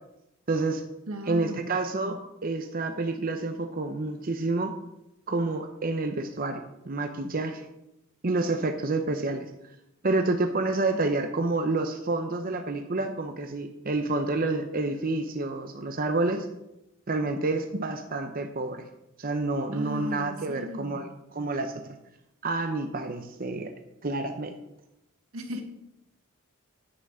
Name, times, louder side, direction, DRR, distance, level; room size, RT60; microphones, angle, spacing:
voice 1, 0.5-0.8 1.3-4.7 5.3-7.7 8.2-9.5 10.0-16.5 17.1-18.8 19.2-21.1 21.3-21.7 22.4-23.7 24.0-24.6, right 2 dB, 40° right, 6 dB, 0.8 m, -28 dB
voice 2, 1.1-1.7 19.7-21.0 25.3-25.6, right 1 dB, 85° right, 5 dB, 1.6 m, -36 dB
9.8 x 8.1 x 6.1 m, 0.87 s
head